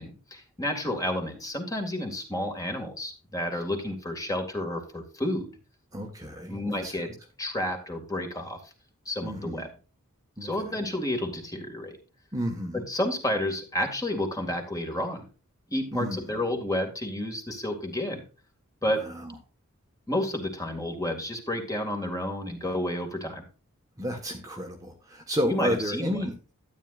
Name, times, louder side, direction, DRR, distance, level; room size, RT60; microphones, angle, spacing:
voice 1, 0.0-5.5 6.5-7.1 7.4-8.6 9.1-9.7 10.4-12.0 12.7-15.3 15.7-18.2 18.8-19.1 20.1-23.5 25.5-26.3, left 1 dB, 15° left, 3 dB, 2.1 m, -30 dB
voice 2, 5.9-7.1 9.2-9.6 10.4-10.8 12.3-12.9 15.9-16.2 18.9-19.4 24.0-26.3, equal, 15° right, 2 dB, 1.3 m, -32 dB
13.0 x 9.4 x 2.5 m, 0.35 s
head